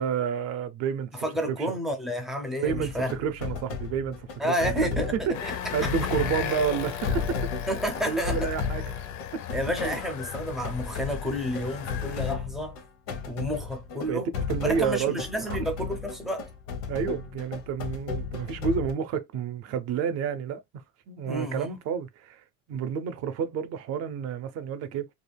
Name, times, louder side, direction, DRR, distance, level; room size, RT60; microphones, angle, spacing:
voice 1, 0.0-1.7 2.6-7.4 8.1-8.9 9.3-9.4 9.8-10.0 14.1-14.2 14.5-15.1 15.5-15.7 16.9-25.1, right 7 dB, 55° right, 0.5 m, -30 dB
voice 2, 1.1-3.1 4.4-5.1 5.4-5.9 7.7-8.5 9.5-12.8 13.3-14.3 14.6-16.5 21.2-21.7, equal, ahead, 0.4 m, -30 dB
sound 1, 2.7-18.9, left 6 dB, 85° left, 0.8 m, -34 dB
sound 2, 5.3-12.3, left 9 dB, 70° left, 0.5 m, -36 dB
2.4 x 2.1 x 3.2 m
cardioid pair, 165°, 31 cm